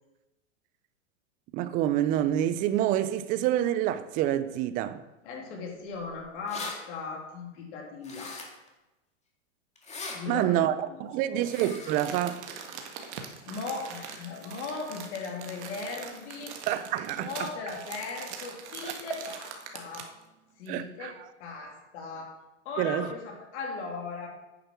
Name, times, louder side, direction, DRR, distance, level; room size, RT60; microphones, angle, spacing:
voice 1, 1.5-5.0 10.3-10.8 11.0-12.4 16.7-17.5 18.8-18.9 20.7-21.1 22.8-23.1, right 12 dB, 25° right, 0.3 m, -27 dB
voice 2, 5.2-8.4 10.1-11.4 13.4-16.6 17.1-20.1 20.6-22.3 22.6-24.3, left 4 dB, 60° left, 3.1 m, -38 dB
sound 1, 6.0-6.1 6.3-6.7 8.0-8.7 9.8-10.2 11.4-11.9, left 3 dB, 15° left, 1.9 m, -39 dB
Crumpling crinkling, 11.6-20.2 20.7-20.8, right 7 dB, 60° right, 1.7 m, -42 dB
9.6 x 6.9 x 6.1 m
hypercardioid pair, 125°, 39 cm